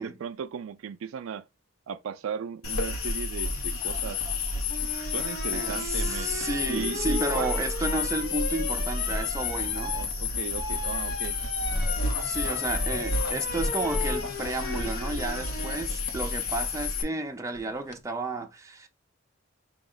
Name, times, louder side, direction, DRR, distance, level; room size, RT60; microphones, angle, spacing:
voice 1, 0.0-1.4 1.9-4.2 5.1-7.5 9.9-11.4, right 7 dB, 70° right, 0.3 m, -36 dB
sound 1, 2.6-17.0, left 4 dB, 85° left, 0.9 m, -30 dB
sound 2, 4.7-15.9 17.5-18.0, left 2 dB, 55° left, 0.6 m, -37 dB
voice 2, 5.5-10.0 12.2-18.9, right 2 dB, 15° right, 0.5 m, -32 dB
4.9 x 2.1 x 3.8 m
head